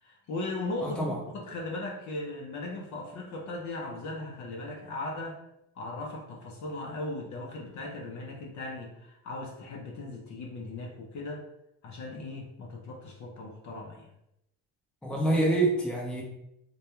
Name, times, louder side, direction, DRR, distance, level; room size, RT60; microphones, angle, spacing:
voice 1, 0.0-5.4 5.8-11.4 11.8-14.1, left 2 dB, 45° left, -1 dB, 0.6 m, -38 dB
voice 2, 0.8-1.2 15.0-16.2, right 2 dB, ahead, -3 dB, 0.6 m, -26 dB
2.2 x 2.2 x 2.9 m, 0.83 s
supercardioid pair, 95°, 41 cm